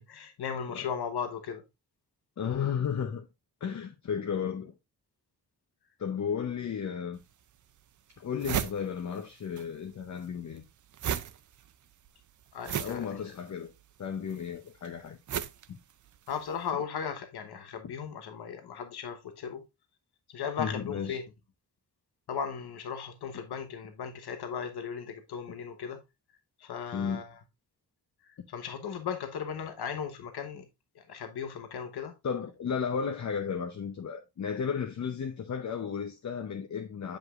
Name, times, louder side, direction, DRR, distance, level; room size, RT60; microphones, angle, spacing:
voice 1, 0.0-1.6 12.5-13.2 16.3-19.6 20.3-21.2 22.3-26.0 26.6-27.3 28.2-30.6 30.9-32.1, left 7 dB, 75° left, 1.0 m, -37 dB
voice 2, 2.4-3.3 3.6-4.7 6.0-7.2 8.2-10.6 12.8-13.7 14.0-15.2 15.7-15.8 20.6-21.2 26.9-27.2 28.4-28.5 32.2-37.2, left 7 dB, 45° left, 0.7 m, -34 dB
sound 1, 7.2-7.3 7.8-7.9 8.1-9.7 9.9-16.5, right 10 dB, 50° right, 0.5 m, -36 dB
8.0 x 5.1 x 2.4 m
wide cardioid pair, 150°, 39 cm